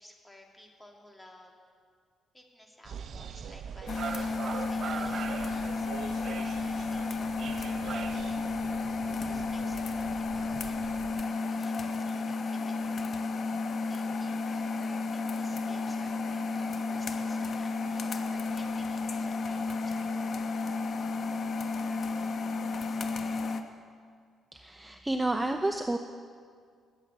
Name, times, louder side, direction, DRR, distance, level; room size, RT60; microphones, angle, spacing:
voice 1, 0.0-1.5 2.3-5.9 6.4-8.5 8.8-11.0 11.3-13.1 13.9-20.1, left 1 dB, 10° left, 1 dB, 2.6 m, -54 dB
sound 1, 2.8-11.2, right 7 dB, 60° right, 0.6 m, -41 dB
sound 2, 3.9-23.6, left 3 dB, 50° left, 1.0 m, -32 dB
voice 2, 24.5-26.0, right 2 dB, 15° right, 6 dB, 0.7 m, -30 dB
20.0 x 7.4 x 8.1 m, 2.1 s
cardioid pair, 90°, 0 cm